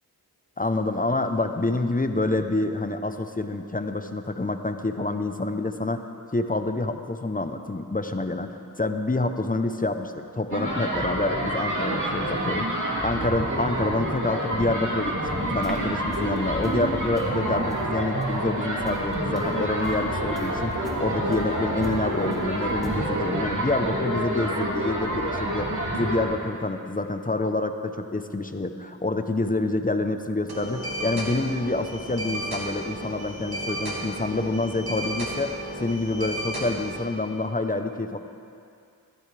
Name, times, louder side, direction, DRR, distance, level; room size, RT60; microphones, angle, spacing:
voice 1, 0.6-6.0 6.3-12.7 13.0-35.5 35.8-38.2, left 2 dB, 20° left, 7 dB, 0.8 m, -27 dB
sound 1, 10.5-26.2, right 1 dB, 50° right, 3.1 m, -28 dB
sound 2, 15.4-22.9, equal, ahead, 2.5 m, -43 dB
sound 3, 30.5-37.0, equal, 80° right, 1.9 m, -33 dB
15.0 x 14.0 x 3.4 m, 2.4 s
cardioid pair, 40°, 38 cm